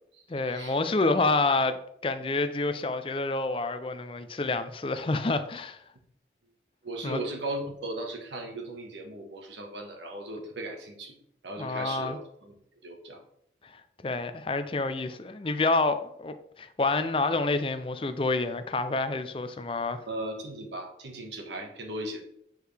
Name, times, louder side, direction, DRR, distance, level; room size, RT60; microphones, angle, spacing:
voice 1, 0.3-5.8 7.0-7.2 11.6-12.2 13.6-20.0, left 3 dB, 30° left, 0.5 m, -28 dB
voice 2, 6.8-11.1 11.4-12.5 12.8-13.2 20.1-22.2, right 1 dB, 85° right, 1.5 m, -37 dB
8.3 x 4.6 x 3.4 m
head